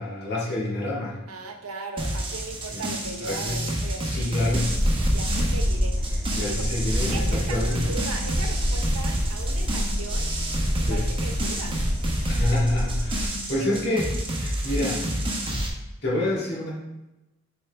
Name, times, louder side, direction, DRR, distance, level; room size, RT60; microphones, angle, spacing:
voice 1, 0.0-1.2 2.7-2.8 3.2-3.6 4.0-5.1 6.3-7.8 10.8-11.0 12.3-14.0 14.4-15.0 16.0-16.7, left 1 dB, 50° left, -5 dB, 2.0 m, -28 dB
voice 2, 1.3-4.3 5.1-6.0 6.5-6.7 7.1-10.3 10.8-11.8 13.6-13.8, right 3 dB, 85° right, 4 dB, 0.9 m, -37 dB
sound 1, 2.0-15.7, right 1 dB, 25° right, 1.0 m, -29 dB
sound 2, 4.5-13.3, equal, 15° left, 1.9 m, -27 dB
7.3 x 4.4 x 3.4 m, 1.0 s
head